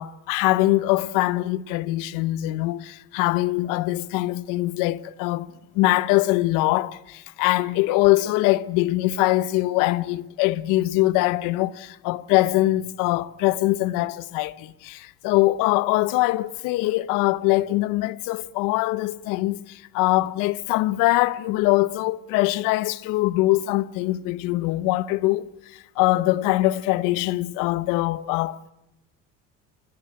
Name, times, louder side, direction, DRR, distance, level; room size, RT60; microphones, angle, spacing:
voice 1, 0.0-5.5 5.7-25.5 26.0-28.7, left 18 dB, 80° left, 1.0 m, -23 dB
25.0 x 19.0 x 8.7 m
cardioid pair, 110°, 32 cm